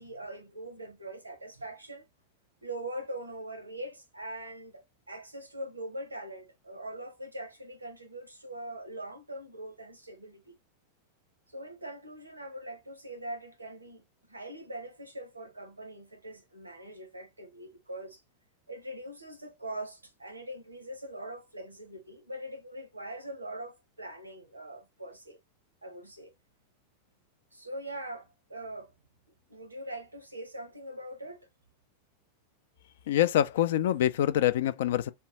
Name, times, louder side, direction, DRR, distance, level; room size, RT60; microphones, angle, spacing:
voice 1, 0.0-2.1 2.6-10.6 11.5-14.0 14.3-18.2 18.7-25.4 25.8-26.3 27.5-28.9 29.5-31.5, right 1 dB, 85° right, 0.7 m, -42 dB
voice 2, 33.1-35.1, left 11 dB, 55° left, 0.4 m, -25 dB
3.6 x 2.2 x 2.8 m
figure-of-eight pair, 90°, 0 cm